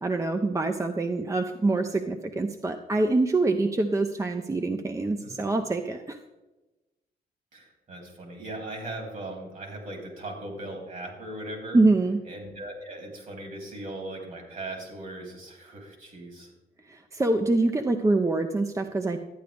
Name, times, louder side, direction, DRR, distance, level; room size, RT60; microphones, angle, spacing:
voice 1, 0.0-6.2 11.7-12.2 16.9-19.2, right 2 dB, 20° right, 6 dB, 0.6 m, -25 dB
voice 2, 7.5-11.8 12.2-16.5, right 1 dB, 55° right, 1 dB, 3.3 m, -39 dB
12.0 x 9.0 x 3.4 m, 1.1 s
cardioid pair, 90°, 17 cm